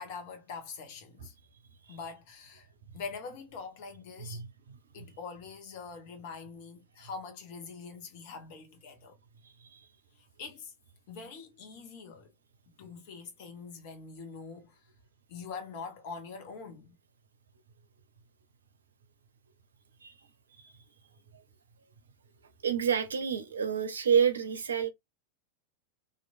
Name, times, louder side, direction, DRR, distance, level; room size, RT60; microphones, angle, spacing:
voice 1, 0.0-1.3 1.9-2.7 2.9-4.4 4.9-9.2 10.4-10.7 11.1-12.3 12.8-14.8 15.3-17.0, left 5 dB, 50° left, 1.0 m, -44 dB
voice 2, 4.2-4.8 9.6-9.8 20.0-20.1 22.6-24.9, right 7 dB, 70° right, 0.6 m, -29 dB
2.9 x 2.5 x 2.5 m
figure-of-eight pair, 90°, 0 cm